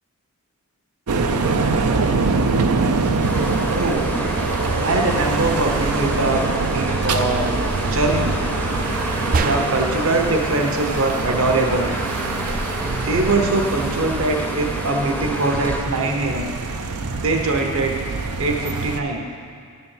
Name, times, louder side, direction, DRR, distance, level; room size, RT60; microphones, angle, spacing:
sound 1, 1.1-19.0, right 3 dB, 85° right, 0.6 m, -24 dB
sound 2, 3.2-15.8, equal, 10° left, 0.6 m, -30 dB
voice 1, 3.7-4.1 4.8-6.4 6.7-7.6 7.9-8.5 9.4-11.9 13.0-16.5 17.1-17.9 18.4-19.2, right 2 dB, 65° right, 2 dB, 1.0 m, -22 dB
sound 3, 9.3-10.0, right 4 dB, 40° right, 0.4 m, -24 dB
12.0 x 4.2 x 7.3 m, 2.2 s
head